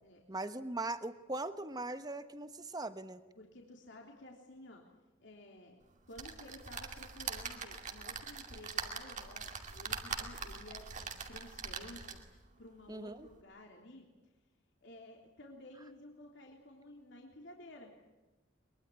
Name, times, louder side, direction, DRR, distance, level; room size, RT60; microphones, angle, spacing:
voice 1, 0.3-3.2 12.9-13.3, right 2 dB, 20° right, 11 dB, 1.2 m, -40 dB
voice 2, 3.4-4.8 5.2-5.8 6.1-12.2 12.6-14.1 14.8-17.9, left 1 dB, 60° left, 0 dB, 3.4 m, -53 dB
sound 1, 6.1-12.4 12.9-13.0 13.3-13.4, right 5 dB, 35° right, 2.4 m, -42 dB
22.5 x 22.5 x 10.0 m, 1.1 s
head